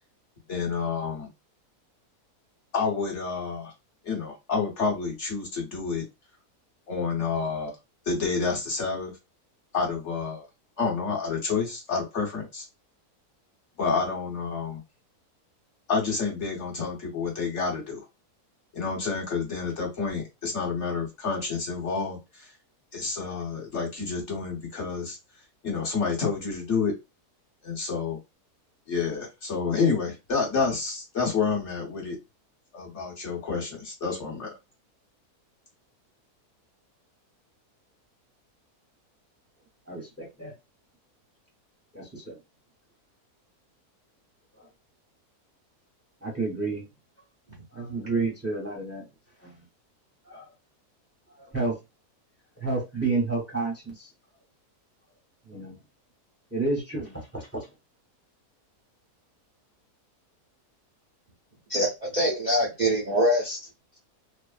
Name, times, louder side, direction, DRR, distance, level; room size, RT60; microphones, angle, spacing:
voice 1, 0.5-1.3 2.7-3.7 4.0-6.0 6.9-7.7 8.1-9.1 9.7-10.4 10.8-12.7 13.8-14.8 15.9-18.0 18.7-22.5 22.9-25.2 25.6-26.9 27.6-28.2 28.9-32.2 32.7-34.5, left 5 dB, 50° left, 1.3 m, -29 dB
voice 2, 39.9-40.5 41.9-42.4 44.6-44.7 46.2-46.8 47.7-49.0 49.4-49.5 50.3-50.4 51.5-51.8 52.6-54.1 55.5-55.7 56.5-57.7, right 3 dB, 15° right, 0.6 m, -30 dB
voice 3, 61.7-63.6, equal, 60° right, 0.4 m, -24 dB
2.9 x 2.1 x 2.4 m
omnidirectional pair, 1.7 m